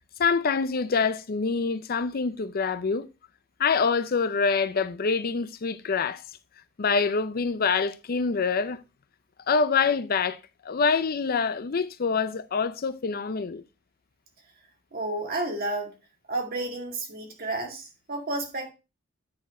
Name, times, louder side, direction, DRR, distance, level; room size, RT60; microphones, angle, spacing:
voice 1, 0.2-3.1 3.6-6.2 6.8-8.8 9.5-10.4 10.6-13.6, left 5 dB, 45° left, 0.5 m, -25 dB
voice 2, 14.9-15.9 16.3-18.7, right 2 dB, 45° right, 2.1 m, -31 dB
9.5 x 4.4 x 4.3 m
head